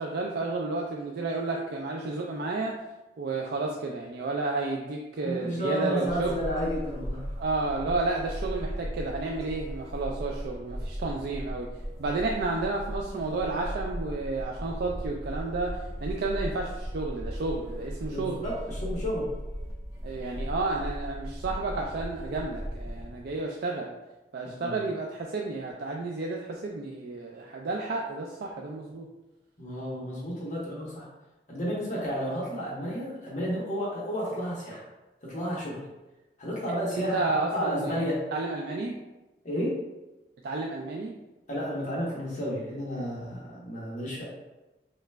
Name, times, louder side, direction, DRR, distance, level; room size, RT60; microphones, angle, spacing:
voice 1, 0.0-2.8 3.2-6.3 7.4-11.7 12.0-18.4 20.0-23.9 24.3-29.1 37.0-39.0 40.4-41.1, right 3 dB, 65° right, 0 dB, 0.4 m, -31 dB
voice 2, 5.2-7.3 18.1-19.3 24.6-24.8 29.6-31.1 31.5-34.8 35.2-35.8 36.4-37.3 37.5-38.2 39.4-39.8 41.5-44.3, equal, 45° left, -5 dB, 1.0 m, -31 dB
sound 1, 6.0-23.4, equal, 20° right, 0.8 m, -37 dB
4.8 x 3.1 x 2.2 m, 1.0 s
head